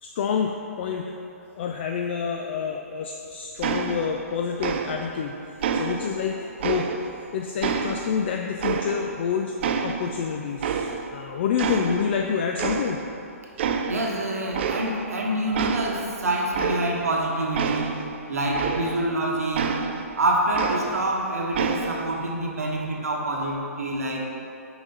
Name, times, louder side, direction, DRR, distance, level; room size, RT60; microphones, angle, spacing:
voice 1, 0.0-1.1 1.6-6.9 7.3-9.6 9.8-13.0, left 7 dB, 45° left, 2 dB, 0.4 m, -28 dB
sound 1, 3.6-4.3 4.6-5.2 5.6-7.2 7.6-9.3 9.6-11.2 11.6-12.3 12.6-13.2 13.6-14.1 14.5-15.2 15.5-19.2 19.5-21.2 21.5-22.2, right 6 dB, 45° right, 0.4 m, -29 dB
voice 2, 13.9-18.0 18.3-19.7 20.2-24.2, right 1 dB, 70° right, -1 dB, 1.2 m, -26 dB
6.1 x 5.0 x 3.9 m, 2.6 s
figure-of-eight pair, 125°, 8 cm